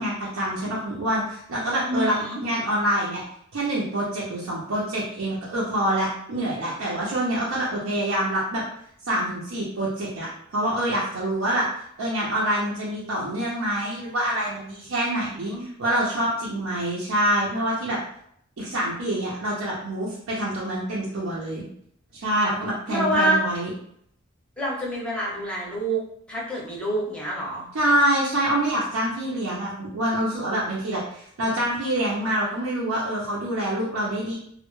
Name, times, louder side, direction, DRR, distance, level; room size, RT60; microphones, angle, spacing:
voice 1, 0.0-3.2 3.5-8.6 9.0-11.6 12.0-18.0 18.6-21.7 22.1-23.7 27.7-34.4, right 1 dB, 85° right, -6 dB, 0.5 m, -26 dB
voice 2, 1.9-2.4 15.5-15.7 22.9-23.4 24.6-26.0 26.3-27.6, right 1 dB, 5° left, -4 dB, 0.6 m, -26 dB
2.1 x 2.0 x 3.0 m, 0.70 s
head